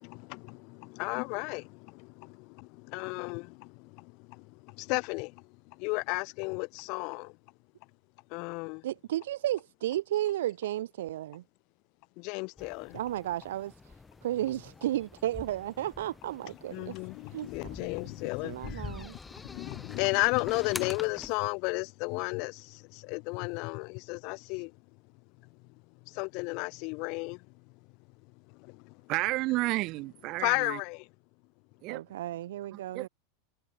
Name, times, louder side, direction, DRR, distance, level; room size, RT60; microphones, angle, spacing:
voice 1, 0.0-7.4 8.3-8.8 12.2-13.0 16.7-24.8 25.5-25.6 26.1-27.5 28.5-29.0 30.4-31.1, left 30 dB, 35° left, 2.1 m, -34 dB
voice 2, 8.8-11.4 12.9-14.0 14.2-16.9 17.3-17.5 18.4-19.2 31.9-33.1, right 13 dB, 80° right, 6.2 m, -33 dB
sound 1, 12.6-21.4, left 3 dB, 5° left, 6.2 m, -46 dB
voice 3, 29.1-30.8 31.8-32.0 32.7-33.1, right 20 dB, 30° right, 4.0 m, -31 dB
supercardioid pair, 180°, 0 cm